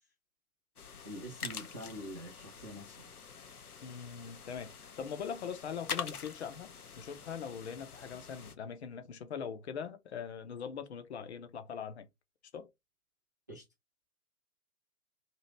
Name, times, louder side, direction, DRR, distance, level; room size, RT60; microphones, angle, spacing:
sound 1, 0.8-8.5, left 6 dB, 80° left, 0.7 m, -45 dB
voice 1, 1.0-3.0 13.5-13.6, equal, 15° right, 0.4 m, -45 dB
voice 2, 3.8-12.1 12.5-12.7, left 7 dB, 50° left, 0.7 m, -42 dB
2.8 x 2.8 x 3.0 m
figure-of-eight pair, 125°, 44 cm